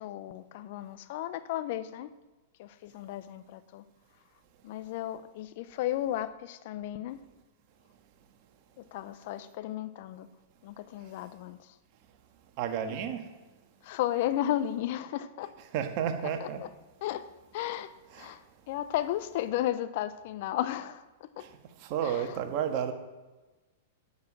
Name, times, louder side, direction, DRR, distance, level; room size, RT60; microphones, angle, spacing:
voice 1, 0.0-2.1 2.6-3.8 4.6-7.2 8.8-10.3 10.6-11.8 12.9-13.0 13.8-15.5 16.4-16.7 17.0-21.5 22.0-22.4, left 12 dB, 55° left, 0.7 m, -34 dB
voice 2, 12.6-13.2 15.7-16.6 18.2-18.3 21.9-22.9, right 8 dB, 50° right, 1.7 m, -31 dB
10.5 x 7.2 x 7.6 m
hypercardioid pair, 105°, 0 cm